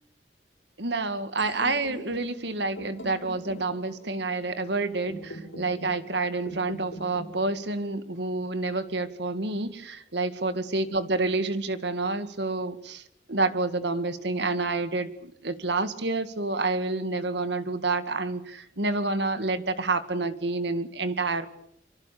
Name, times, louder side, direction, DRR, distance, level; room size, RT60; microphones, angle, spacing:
voice 1, 0.8-13.0 13.3-21.5, right 3 dB, 70° right, 11 dB, 2.0 m, -28 dB
sound 1, 1.4-9.3, equal, 85° left, 5.6 m, -44 dB
24.5 x 24.5 x 8.5 m, 0.71 s
head